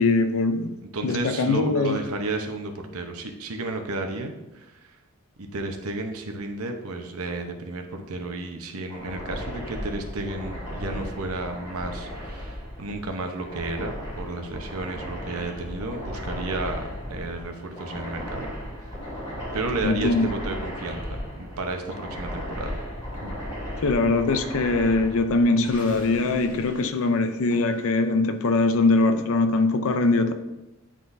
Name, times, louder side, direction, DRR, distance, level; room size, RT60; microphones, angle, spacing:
voice 1, 0.0-0.7 1.0-2.0 19.8-20.3 23.8-30.3, left 3 dB, 65° left, 9 dB, 0.5 m, -22 dB
voice 2, 0.9-5.0 5.4-18.5 18.8-19.0 19.5-22.8 23.2-23.4, right 2 dB, 75° right, 4 dB, 0.8 m, -32 dB
sound 1, 8.9-27.7, equal, 25° left, 2.2 m, -36 dB
9.9 x 3.8 x 2.6 m, 0.98 s
head